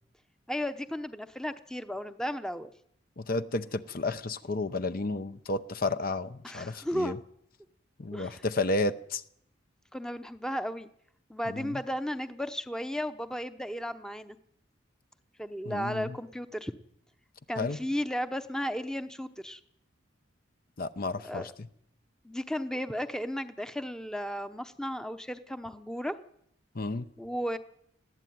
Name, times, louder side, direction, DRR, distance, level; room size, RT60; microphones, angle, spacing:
voice 1, 0.5-2.7 6.4-7.1 8.1-8.4 9.9-10.9 11.3-14.4 15.4-16.7 17.5-19.6 21.2-21.5 22.2-26.2 27.2-27.6, equal, 5° left, 10 dB, 0.8 m, -34 dB
voice 2, 3.2-7.2 8.0-9.2 11.5-11.8 15.6-16.1 17.6-17.8 20.8-21.7 26.7-27.0, left 2 dB, 45° left, 11 dB, 0.7 m, -32 dB
20.5 x 14.0 x 9.4 m, 0.72 s
head